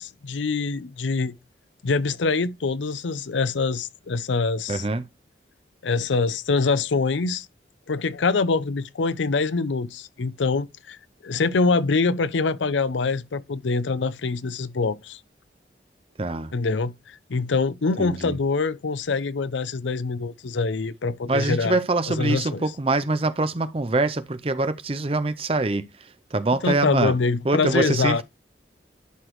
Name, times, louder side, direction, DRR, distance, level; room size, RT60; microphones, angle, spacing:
voice 1, 0.0-1.3 1.8-4.8 5.8-7.5 7.9-11.0 11.2-15.2 16.5-21.8 22.1-22.6 26.6-28.2, left 4 dB, 90° left, 0.6 m, -24 dB
voice 2, 4.7-5.0 16.2-16.5 18.0-18.4 21.3-25.8 26.3-27.1 27.4-28.2, right 2 dB, 30° right, 0.5 m, -24 dB
11.5 x 5.0 x 3.1 m
head